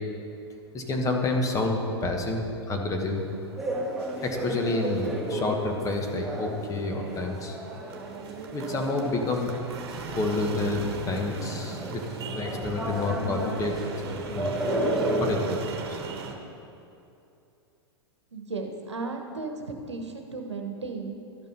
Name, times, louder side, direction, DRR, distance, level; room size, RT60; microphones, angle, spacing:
voice 1, 0.7-3.2 4.2-7.6 8.5-9.5 10.1-14.5 15.2-16.0, left 2 dB, 20° left, 2 dB, 1.3 m, -29 dB
sound 1, 3.0-16.4, right 4 dB, 60° right, 1.2 m, -39 dB
sound 2, 3.6-15.5, right 1 dB, ahead, 1.5 m, -33 dB
voice 2, 18.3-19.5 19.9-21.2, right 4 dB, 90° right, 3 dB, 1.1 m, -35 dB
12.5 x 5.4 x 5.5 m, 2.7 s
hypercardioid pair, 100°, 14 cm